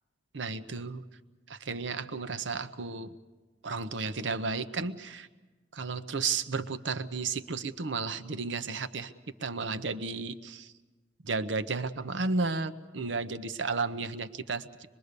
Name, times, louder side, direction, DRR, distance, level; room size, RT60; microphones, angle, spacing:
voice 1, 0.3-1.0 1.5-3.1 3.6-5.3 5.7-9.1 9.4-10.7 11.2-14.9, right 4 dB, 90° right, 11 dB, 0.9 m, -33 dB
25.0 x 22.0 x 6.7 m, 1.2 s
head